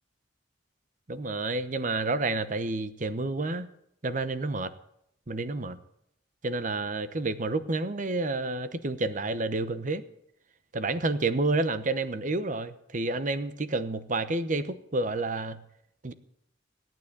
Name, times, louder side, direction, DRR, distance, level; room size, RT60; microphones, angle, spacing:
voice 1, 1.1-3.7 4.0-4.7 5.3-5.8 6.4-10.0 10.7-15.6 16.0-16.1, right 2 dB, 45° right, 13 dB, 0.9 m, -29 dB
16.5 x 9.2 x 8.7 m, 0.77 s
head